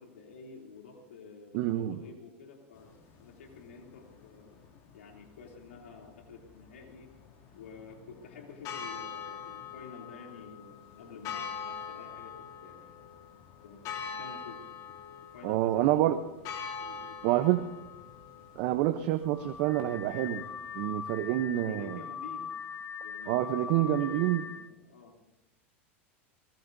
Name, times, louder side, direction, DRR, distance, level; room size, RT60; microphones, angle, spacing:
voice 1, 0.0-4.6 4.9-7.1 7.5-13.1 13.6-14.6 15.3-16.3 16.8-17.7 21.5-22.5 23.0-23.6 24.0-25.2, left 4 dB, 85° left, 1 dB, 3.0 m, -50 dB
voice 2, 1.5-2.0 15.4-16.2 17.2-17.6 18.6-20.4 20.7-22.0 23.3-24.4, right 14 dB, 60° right, 9 dB, 0.8 m, -27 dB
sound 1, 2.7-20.8, left 6 dB, 50° left, 2.7 m, -44 dB
Car / Alarm, 19.2-24.7, left 7 dB, 25° left, 1.0 m, -41 dB
22.0 x 21.0 x 2.7 m, 0.96 s
hypercardioid pair, 105°, 7 cm